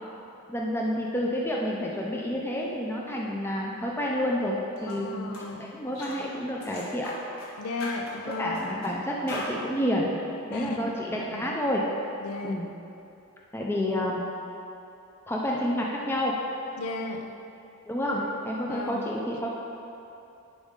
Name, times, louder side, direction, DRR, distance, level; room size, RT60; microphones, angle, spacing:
voice 1, 0.5-7.1 8.4-10.1 10.5-11.8 12.4-12.7 13.5-14.2 15.3-16.4 17.9-19.5, left 1 dB, 10° left, -2 dB, 0.5 m, -29 dB
sound 1, 4.8-5.0 5.3-5.5 6.0-6.2 6.6-7.5 7.8-8.9 9.3-9.5, left 1 dB, 65° left, 1.5 m, -39 dB
voice 2, 4.9-5.8 7.6-8.7 10.5-11.6 12.2-12.6 13.9-14.0 16.8-17.3 18.1-19.1, left 2 dB, 85° left, 4 dB, 0.6 m, -36 dB
10.5 x 5.2 x 3.7 m, 2.8 s
head